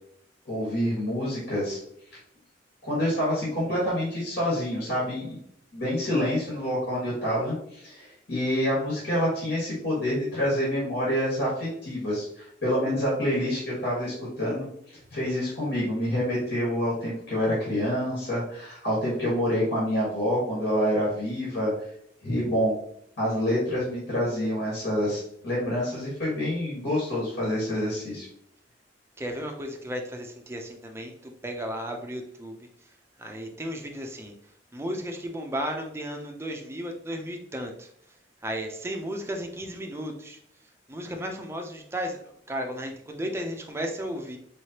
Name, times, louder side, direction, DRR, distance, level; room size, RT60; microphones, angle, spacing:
voice 1, 0.5-1.8 2.8-5.4 5.7-21.7 22.2-22.7 23.2-28.3, equal, 65° left, -6 dB, 1.6 m, -27 dB
voice 2, 29.2-32.9 33.2-34.3 34.7-37.9 38.4-40.4 40.9-44.4, equal, 15° right, 3 dB, 0.5 m, -34 dB
4.1 x 3.2 x 2.8 m, 0.70 s
head